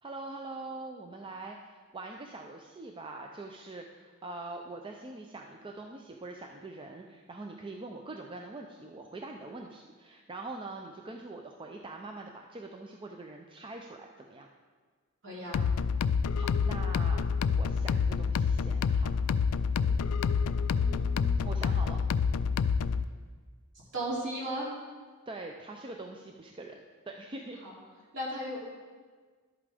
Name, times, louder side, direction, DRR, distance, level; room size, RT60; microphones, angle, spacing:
voice 1, 0.0-14.5 16.4-17.2 17.5-19.1 20.7-22.0 25.3-27.6, right 2 dB, 25° right, 2 dB, 0.5 m, -43 dB
voice 2, 15.2-15.6 19.7-20.0 23.9-24.7 27.6-27.7 28.1-28.6, right 1 dB, 60° right, -5 dB, 3.0 m, -35 dB
sound 1, 15.5-23.0, left 5 dB, 80° left, 0.3 m, -28 dB
11.5 x 8.5 x 3.5 m, 1.5 s
head